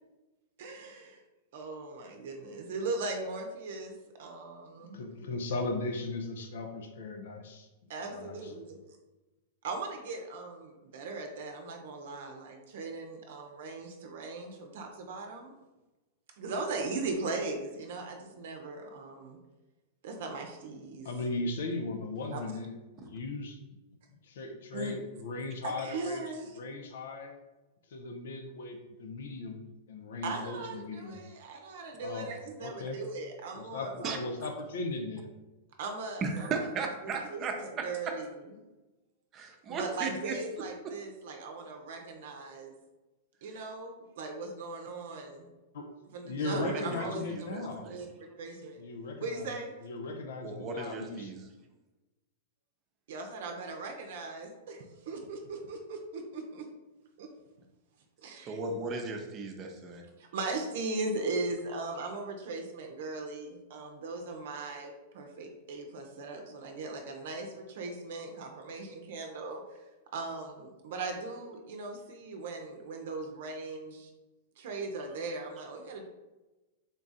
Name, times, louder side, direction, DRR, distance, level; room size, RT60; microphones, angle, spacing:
voice 1, 0.6-1.2 1.5-3.9 4.2-5.0 7.9-8.8 9.6-15.5 16.4-19.4 20.0-21.1 22.3-22.4 24.7-25.0 25.6-26.6 30.2-34.5 35.8-36.9 37.2-38.4 39.7-42.7 43.4-45.5 46.1-48.1 48.4-48.8 49.2-49.8 53.1-56.7 57.2-57.3 58.2-58.6 60.2-69.8 70.1-74.1 74.6-76.0, right 3 dB, 70° right, 3 dB, 0.6 m, -39 dB
voice 2, 4.8-7.7 8.0-8.7 21.0-23.6 24.2-27.3 27.9-31.2 32.0-32.3 32.6-33.0 33.5-35.3 45.7-45.9 46.2-47.9 48.8-49.5 49.8-51.3, left 2 dB, 75° left, 4 dB, 0.5 m, -37 dB
voice 3, 36.2-37.8 39.3-40.4 46.5-48.0 50.4-51.4 58.4-60.0, right 4 dB, 30° right, 3 dB, 0.6 m, -36 dB
3.8 x 2.4 x 4.0 m, 1.1 s
hypercardioid pair, 130°, 0 cm